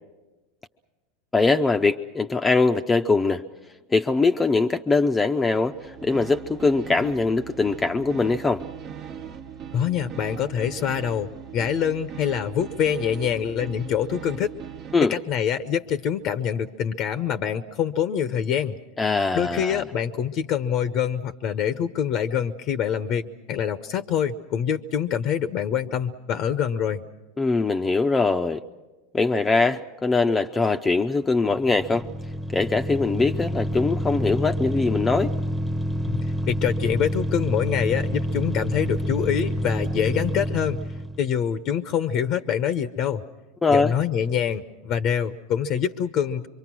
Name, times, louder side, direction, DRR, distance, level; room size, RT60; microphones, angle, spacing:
voice 1, 1.3-3.4 3.9-8.6 14.9-15.1 19.0-19.8 27.4-28.6 29.1-32.1 32.5-35.3 43.6-43.9, left 3 dB, 15° left, 6 dB, 0.7 m, -22 dB
sound 1, 5.6-15.2, right 8 dB, 45° right, 1.1 m, -39 dB
voice 2, 9.7-14.5 15.0-18.8 19.3-27.0 36.0-40.8 41.2-43.2 43.7-46.5, left 8 dB, 50° left, 11 dB, 0.8 m, -25 dB
sound 2, 31.5-41.3, equal, ahead, 1.0 m, -28 dB
25.0 x 24.0 x 6.2 m, 1.2 s
hypercardioid pair, 90°, 0 cm